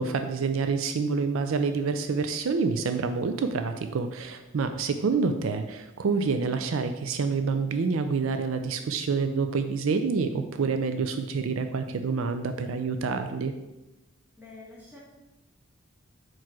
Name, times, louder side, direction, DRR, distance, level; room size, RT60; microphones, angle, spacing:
voice 1, 0.0-13.5, right 4 dB, 75° right, 8 dB, 0.4 m, -27 dB
voice 2, 14.4-15.0, left 3 dB, 10° right, -7 dB, 2.2 m, -47 dB
4.7 x 4.6 x 5.9 m, 1.0 s
head